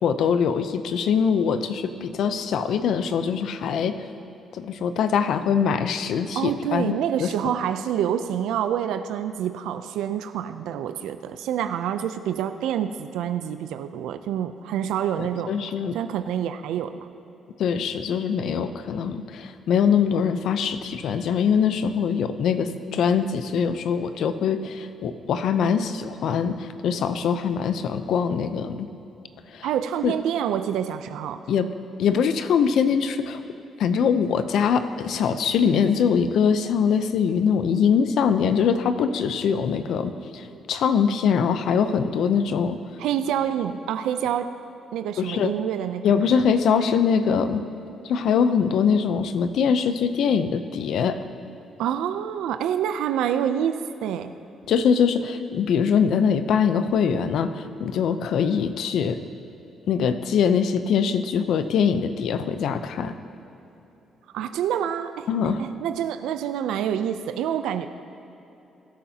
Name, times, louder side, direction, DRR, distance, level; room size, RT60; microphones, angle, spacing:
voice 1, 0.0-4.0 4.5-6.9 7.2-7.3 15.2-16.0 17.6-28.9 29.5-29.7 30.0-30.1 31.5-31.7 32.0-33.4 33.8-42.8 45.2-45.5 46.0-47.6 48.1-51.2 54.7-59.2 59.9-63.1 65.3-65.6, left 7 dB, 75° left, 10 dB, 0.6 m, -23 dB
voice 2, 6.3-15.5 15.9-16.9 29.6-31.4 43.0-44.5 44.9-46.3 51.8-54.3 64.3-65.3 65.6-67.9, right 9 dB, 85° right, 9 dB, 0.4 m, -27 dB
22.0 x 8.7 x 2.8 m, 3.0 s
cardioid pair, 90°, 0 cm